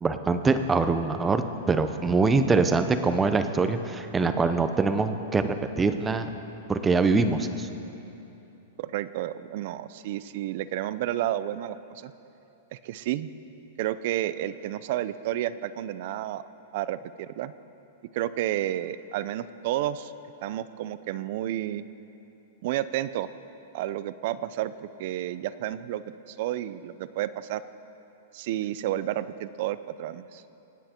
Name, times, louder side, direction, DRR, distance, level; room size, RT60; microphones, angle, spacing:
voice 1, 0.0-1.4 1.7-6.3 6.7-7.7, right 4 dB, 10° right, 8 dB, 0.7 m, -24 dB
voice 2, 8.8-12.1 12.7-13.3 13.8-16.4 16.7-17.5 18.1-20.1 20.4-21.8 22.6-23.3 23.7-27.6 28.3-30.4, right 13 dB, 55° right, 15 dB, 0.5 m, -31 dB
25.0 x 9.2 x 4.5 m, 2.9 s
hypercardioid pair, 150°, 0 cm